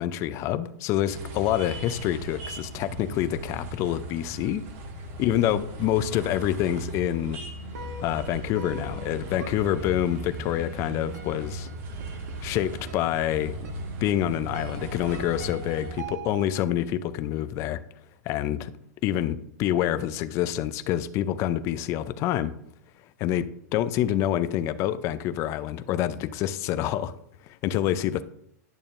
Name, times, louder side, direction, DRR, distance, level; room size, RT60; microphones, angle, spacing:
voice 1, 0.0-4.6 5.2-7.4 8.0-11.7 12.4-13.6 14.0-17.8 18.3-18.7 19.0-22.5 23.2-27.1 27.6-28.2, left 12 dB, 30° left, 13 dB, 0.5 m, -27 dB
sound 1, 1.1-16.0, right 2 dB, 50° right, 1.8 m, -38 dB
sound 2, 7.7-16.7, right 3 dB, 75° right, 1.5 m, -44 dB
11.0 x 6.9 x 2.5 m, 0.73 s
supercardioid pair, 150°, 9 cm